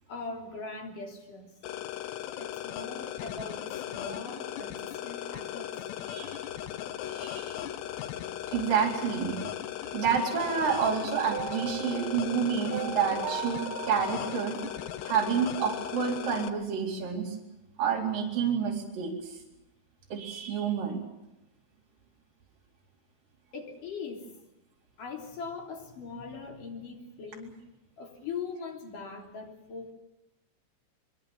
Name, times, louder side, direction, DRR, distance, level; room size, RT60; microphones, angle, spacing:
voice 1, 0.1-1.5 2.4-5.9 23.5-24.3 25.0-27.6 28.0-29.9, left 4 dB, 50° left, 1 dB, 4.7 m, -41 dB
sound 1, 1.6-16.5, left 12 dB, 75° left, 3.1 m, -37 dB
voice 2, 6.1-6.4 7.1-7.6 8.5-9.4 9.9-14.6 15.0-17.4 17.8-19.3 20.1-21.0, right 7 dB, 50° right, -1 dB, 5.5 m, -29 dB
sound 2, 11.3-15.5, right 9 dB, 90° right, 3.9 m, -39 dB
23.5 x 22.5 x 7.4 m, 0.92 s
omnidirectional pair, 5.2 m